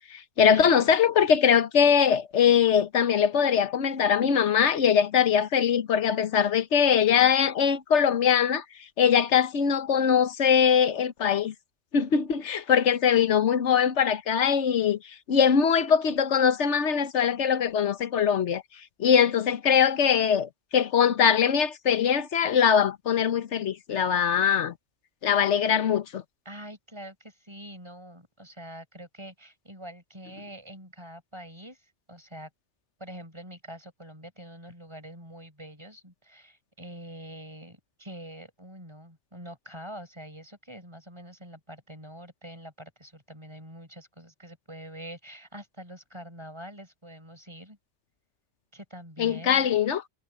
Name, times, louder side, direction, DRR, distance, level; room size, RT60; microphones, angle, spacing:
voice 1, 0.1-8.6 9.0-11.5 11.9-15.0 15.3-18.6 19.0-24.7 25.2-26.2 49.2-50.0, left 7 dB, 90° left, 1.3 m, -22 dB
voice 2, 26.4-31.8 32.1-32.5 33.0-47.8 48.7-49.7, right 1 dB, 25° right, 6.2 m, -45 dB
omnidirectional pair, 1.2 m